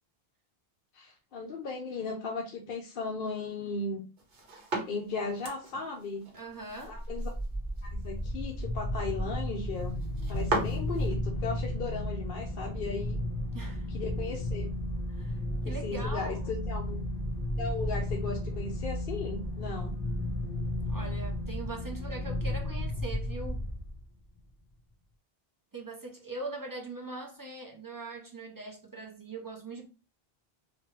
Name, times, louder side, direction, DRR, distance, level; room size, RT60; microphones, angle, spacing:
voice 1, 0.9-4.0 4.9-6.3 6.8-7.3 7.8-10.0 10.3-13.2 13.9-14.7 15.6-17.0 17.6-20.0, left 4 dB, 65° left, 0.8 m, -36 dB
sound 1, 4.2-11.1, right 2 dB, 60° right, 1.1 m, -38 dB
voice 2, 6.3-7.0 13.5-13.9 15.1-15.4 15.6-16.5 20.9-23.6 25.7-29.9, right 2 dB, 30° right, 0.4 m, -41 dB
sound 2, 6.8-24.2, left 1 dB, 10° left, 0.9 m, -33 dB
3.0 x 2.4 x 3.0 m
omnidirectional pair, 1.0 m